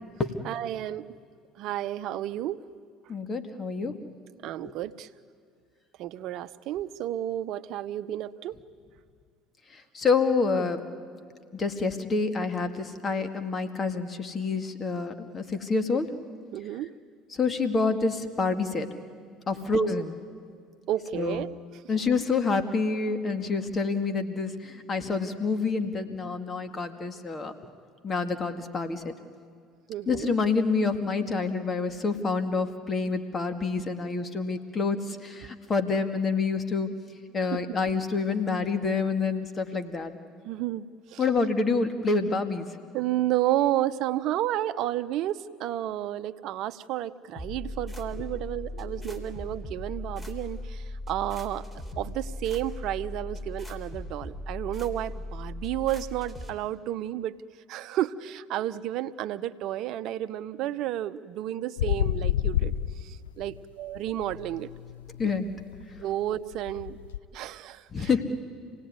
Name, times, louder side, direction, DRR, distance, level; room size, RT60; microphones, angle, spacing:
voice 1, 0.4-1.1 1.6-2.6 4.4-5.1 6.0-8.6 16.5-16.9 19.6-19.7 20.9-21.5 29.9-30.4 37.5-37.6 40.4-41.2 42.9-51.6 52.0-57.4 57.7-62.7 63.0-64.7 66.0-67.0 67.3-68.2, right 13 dB, 60° right, 14 dB, 0.8 m, -31 dB
voice 2, 3.1-4.0 9.9-10.8 11.5-16.1 17.3-18.9 19.5-20.2 21.1-21.4 21.9-27.5 28.0-29.1 30.1-36.9 37.3-40.2 41.2-42.7 48.1-48.2 49.1-49.2 65.2-65.5 67.9-68.2, left 4 dB, 35° left, 8 dB, 2.0 m, -27 dB
sound 1, 47.4-56.5, left 1 dB, 15° left, 3.8 m, -38 dB
sound 2, 61.8-63.6 63.9-67.2, left 12 dB, 85° left, 0.7 m, -30 dB
27.5 x 18.5 x 9.6 m, 2.1 s
hypercardioid pair, 70°, 0 cm